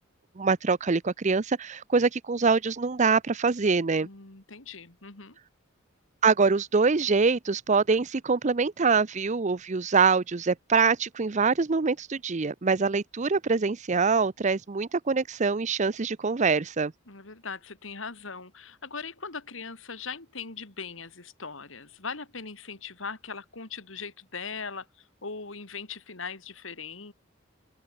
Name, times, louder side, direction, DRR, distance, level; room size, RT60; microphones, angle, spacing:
voice 1, 0.4-4.1 6.2-16.9, right 4 dB, 40° right, 0.6 m, -24 dB
voice 2, 4.0-5.4 17.1-27.1, left 5 dB, 90° left, 2.9 m, -40 dB
open air
head